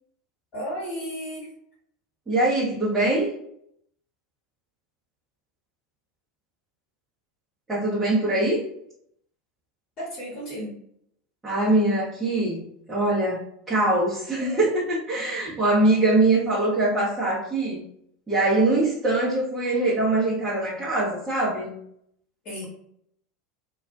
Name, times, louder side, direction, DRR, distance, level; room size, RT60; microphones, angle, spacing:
voice 1, 0.5-1.5 10.0-10.7 22.4-22.6, equal, 35° left, -6 dB, 1.1 m, -33 dB
voice 2, 2.3-3.3 7.7-8.6 11.4-17.8 18.3-21.8, right 2 dB, 15° right, -9 dB, 0.9 m, -23 dB
2.3 x 2.3 x 2.3 m, 0.71 s
figure-of-eight pair, 75°, 0 cm